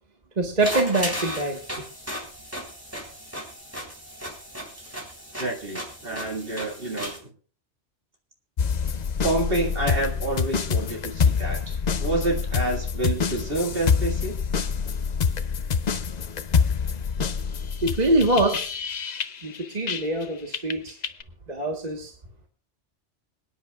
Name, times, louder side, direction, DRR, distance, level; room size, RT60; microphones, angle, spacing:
voice 1, 0.4-1.6 17.8-18.7 19.4-20.9 21.5-22.1, right 2 dB, 35° right, 2 dB, 1.5 m, -24 dB
sound 1, 0.6-7.2, equal, 10° right, 3.8 m, -35 dB
voice 2, 5.4-7.3 9.2-14.4, right 2 dB, 50° right, 1 dB, 2.2 m, -28 dB
sound 2, 8.6-20.2 20.5-21.2, left 6 dB, 45° left, 0.7 m, -26 dB
26.0 x 9.7 x 2.4 m, 0.39 s
omnidirectional pair, 1.2 m